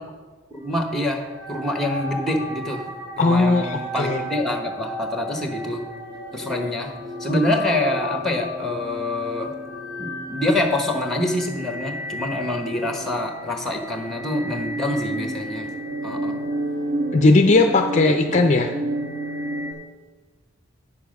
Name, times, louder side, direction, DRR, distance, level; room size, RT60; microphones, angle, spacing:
voice 1, 0.5-2.8 3.2-5.8 6.3-6.9 7.2-9.5 10.0-15.7 16.0-16.3 18.0-18.4, left 1 dB, ahead, 4 dB, 1.0 m, -26 dB
sound 1, 0.9-19.7, right 1 dB, 60° right, 1.8 m, -32 dB
voice 2, 3.2-4.2 17.1-18.7, left 3 dB, 35° left, 5 dB, 0.4 m, -18 dB
9.5 x 7.0 x 5.2 m, 1.3 s
head